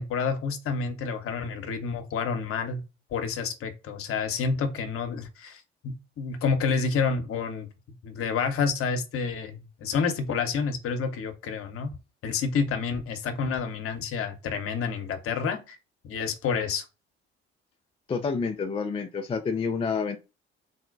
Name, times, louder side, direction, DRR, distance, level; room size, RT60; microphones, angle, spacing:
voice 1, 0.0-2.8 3.1-7.7 8.0-12.0 12.2-15.8 16.1-16.8, left 5 dB, 45° left, 0.8 m, -29 dB
voice 2, 18.1-20.2, left 5 dB, 20° left, 0.4 m, -28 dB
3.9 x 2.1 x 2.5 m
figure-of-eight pair, 50°, 31 cm